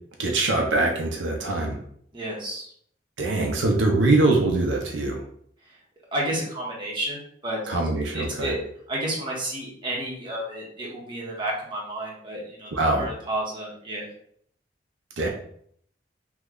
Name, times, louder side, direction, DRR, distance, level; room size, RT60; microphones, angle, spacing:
voice 1, 0.2-1.8 3.2-5.3 7.7-8.5 12.7-13.1 15.2-15.3, right 2 dB, 80° right, 1 dB, 0.5 m, -23 dB
voice 2, 2.1-2.7 6.1-7.7 8.1-8.6 8.9-14.1, right 1 dB, 25° right, -4 dB, 0.9 m, -31 dB
3.0 x 2.2 x 3.6 m, 0.65 s
head